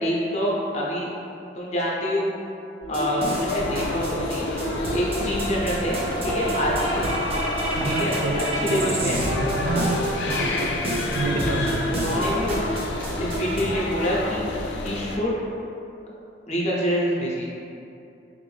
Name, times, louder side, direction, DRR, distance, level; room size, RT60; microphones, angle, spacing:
voice 1, 0.0-1.1 1.5-2.3 2.9-4.5 4.9-6.0 6.2-7.1 7.8-9.2 9.8-10.0 11.9-12.6 13.2-14.4 14.8-15.4 16.5-17.5, equal, 40° left, -5 dB, 0.7 m, -26 dB
sound 1, 2.8-13.6, right 1 dB, 35° right, 0.6 m, -29 dB
sound 2, 3.2-13.7, left 1 dB, 5° left, 0.3 m, -40 dB
sound 3, 3.3-15.2, left 2 dB, 85° left, 0.3 m, -30 dB
voice 2, 7.7-10.6 11.1-11.8, right 2 dB, 80° right, 2 dB, 0.4 m, -29 dB
3.5 x 2.6 x 3.2 m, 2.7 s
head